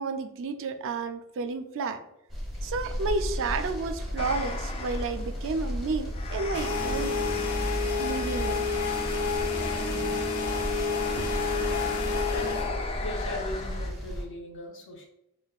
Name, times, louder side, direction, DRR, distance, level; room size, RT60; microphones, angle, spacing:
voice 1, 0.0-2.0 2.6-7.1 8.0-8.7 11.2-11.4, right 4 dB, 60° right, 8 dB, 0.4 m, -31 dB
sound 1, 2.3-14.2, equal, ahead, 0.8 m, -34 dB
sound 2, 4.2-13.9, left 3 dB, 25° left, 0.3 m, -37 dB
sound 3, 6.5-12.7, left 4 dB, 85° left, 0.5 m, -30 dB
voice 2, 13.0-15.1, left 1 dB, 60° left, 1 dB, 0.8 m, -38 dB
5.2 x 2.2 x 2.3 m, 0.81 s
head